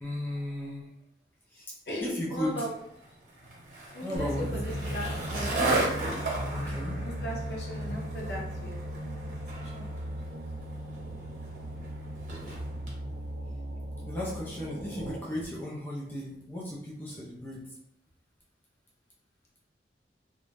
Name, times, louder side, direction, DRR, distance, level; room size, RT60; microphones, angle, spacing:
voice 1, 0.0-0.9 1.5-1.7 2.0-2.6 4.0-4.5 6.5-7.0 14.0-17.6, left 1 dB, 10° left, -5 dB, 0.4 m, -35 dB
voice 2, 1.9-2.7 3.9-5.6 7.0-9.9, equal, 65° left, -2 dB, 0.7 m, -38 dB
Skateboard, 2.4-13.0, right 2 dB, 45° right, 0.8 m, -35 dB
sound 1, 4.2-15.4, equal, 70° right, 0.5 m, -37 dB
2.5 x 2.2 x 3.2 m, 0.75 s
head